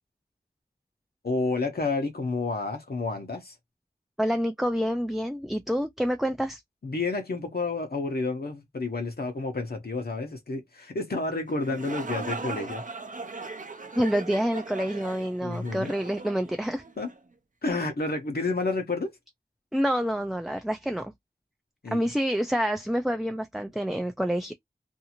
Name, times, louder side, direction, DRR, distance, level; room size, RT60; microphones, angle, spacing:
voice 1, 1.2-3.5 6.8-12.8 15.4-15.9 17.0-17.1 17.6-19.1 21.8-22.1, left 3 dB, 75° left, 0.8 m, -30 dB
voice 2, 4.2-6.6 14.0-16.8 19.7-21.1 21.9-24.5, equal, ahead, 0.3 m, -27 dB
sound 1, 11.5-17.2, right 3 dB, 55° right, 0.5 m, -38 dB
2.6 x 2.4 x 2.8 m
wide cardioid pair, 55°, 16 cm